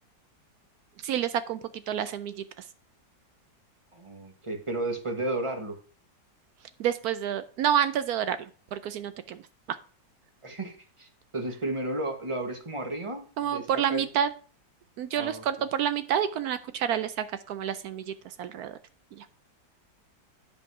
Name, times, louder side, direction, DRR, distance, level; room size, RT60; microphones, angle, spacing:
voice 1, 1.0-1.6 1.9-2.4 6.8-9.4 9.7-9.8 13.4-14.3 15.0-18.8 19.2-19.3, right 9 dB, 75° right, 13 dB, 0.9 m, -29 dB
voice 2, 3.9-5.8 10.4-11.1 11.3-14.1 15.1-15.4, right 2 dB, 20° right, 5 dB, 1.0 m, -33 dB
9.8 x 5.3 x 4.7 m, 0.40 s
omnidirectional pair, 2.0 m